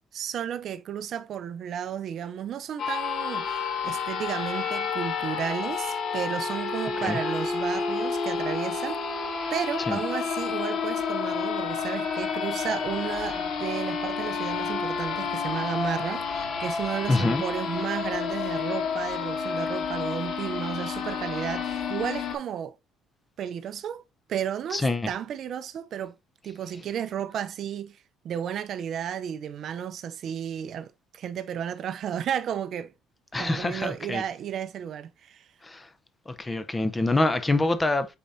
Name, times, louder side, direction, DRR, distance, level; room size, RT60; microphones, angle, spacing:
voice 1, 0.1-9.0 9.5-16.3 16.6-22.8 23.4-24.0 24.3-26.2 26.4-28.0 28.2-32.9 33.4-35.5, right 9 dB, 50° right, 0.5 m, -33 dB
sound 1, 2.8-22.4, left 5 dB, 50° left, 2.1 m, -30 dB
voice 2, 17.1-17.4 24.7-25.1 33.3-34.2 35.6-35.9 36.3-38.2, left 2 dB, 15° left, 0.7 m, -25 dB
8.6 x 4.2 x 2.7 m
cardioid pair, 155°, 0 cm